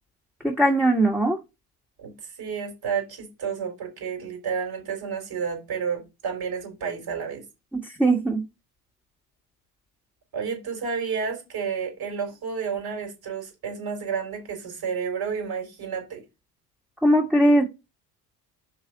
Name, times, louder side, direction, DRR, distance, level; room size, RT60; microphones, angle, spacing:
voice 1, 0.4-1.4 7.7-8.4 17.0-17.7, right 1 dB, 5° right, 1.7 m, -20 dB
voice 2, 2.0-7.4 10.3-16.2, right 6 dB, 50° right, 4.3 m, -31 dB
5.3 x 3.9 x 6.0 m
hypercardioid pair, 55°, 47 cm